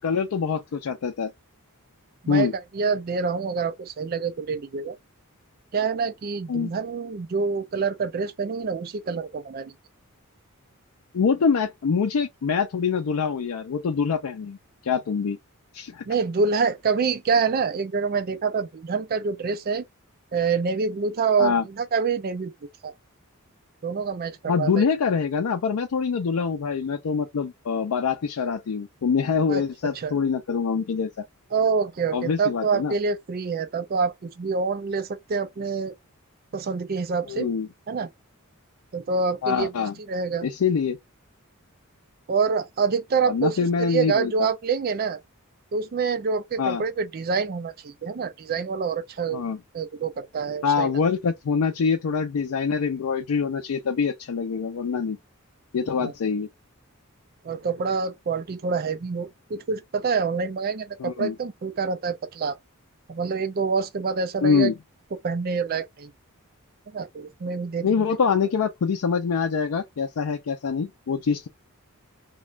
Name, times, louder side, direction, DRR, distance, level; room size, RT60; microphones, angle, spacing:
voice 1, 0.0-1.3 2.3-2.5 6.5-6.7 11.1-14.6 14.8-15.4 15.7-16.0 21.4-21.6 24.5-31.1 32.1-32.9 37.3-37.7 39.4-40.0 40.4-41.0 43.2-44.3 46.6-46.8 49.3-49.6 50.6-55.2 55.7-56.5 61.0-61.4 64.4-64.7 67.8-71.5, left 5 dB, 75° left, 0.4 m, -24 dB
voice 2, 2.7-5.0 5.7-9.7 16.1-19.8 20.3-22.5 22.8-22.9 23.8-24.8 29.5-29.6 30.0-30.1 31.5-35.9 36.5-37.5 37.9-38.1 38.9-39.7 40.1-40.5 42.3-45.2 45.7-49.4 49.7-50.9 56.0-56.1 57.4-62.6 63.1-64.7 65.2-66.1 66.9-67.9, right 5 dB, 45° right, 0.4 m, -26 dB
2.4 x 2.2 x 3.1 m
head